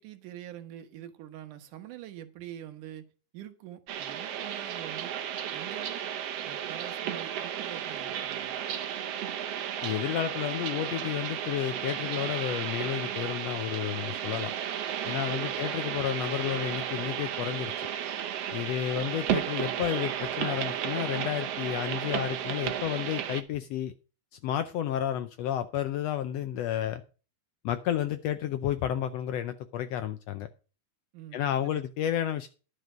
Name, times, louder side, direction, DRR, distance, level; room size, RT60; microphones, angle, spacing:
voice 1, 0.0-5.2 5.5-6.1 6.4-8.6 15.3-15.6 31.1-32.2, right 12 dB, 85° right, 2.7 m, -45 dB
sound 1, 3.9-23.4, right 10 dB, 65° right, 1.7 m, -33 dB
voice 2, 9.8-14.5 15.0-17.9 18.5-23.9 24.4-27.0 27.6-30.5 31.3-32.5, left 11 dB, 80° left, 1.5 m, -31 dB
11.5 x 6.7 x 6.1 m
omnidirectional pair, 3.5 m